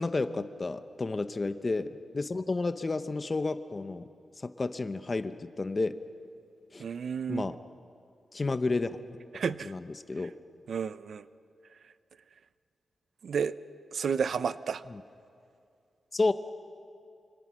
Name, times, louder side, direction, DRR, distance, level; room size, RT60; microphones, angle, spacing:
voice 1, 0.0-4.1 4.4-5.9 6.7-6.8 7.3-7.6 8.3-8.9 9.6-10.3 16.1-16.3, left 3 dB, 25° left, 10 dB, 0.8 m, -31 dB
voice 2, 6.8-7.6 9.3-9.7 10.7-11.3 13.2-13.6 13.9-14.8, right 6 dB, 60° right, 14 dB, 0.6 m, -31 dB
26.5 x 26.0 x 6.2 m, 2.5 s
wide cardioid pair, 175°, 0 cm